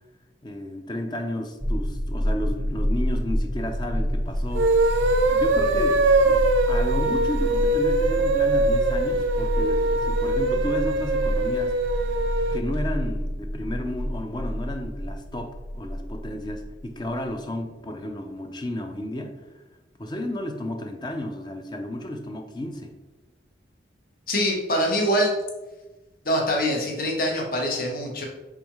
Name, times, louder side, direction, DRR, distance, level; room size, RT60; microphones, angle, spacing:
voice 1, 0.4-11.7 12.5-19.4 20.0-22.9, left 1 dB, 25° left, 5 dB, 0.4 m, -33 dB
sound 1, 1.6-17.3, equal, 5° right, 0.8 m, -28 dB
sound 2, 4.5-12.6, right 2 dB, 80° right, 0.4 m, -22 dB
voice 2, 24.3-25.4 26.2-28.2, equal, 50° left, 0 dB, 0.9 m, -24 dB
5.0 x 3.5 x 3.0 m, 1.1 s
head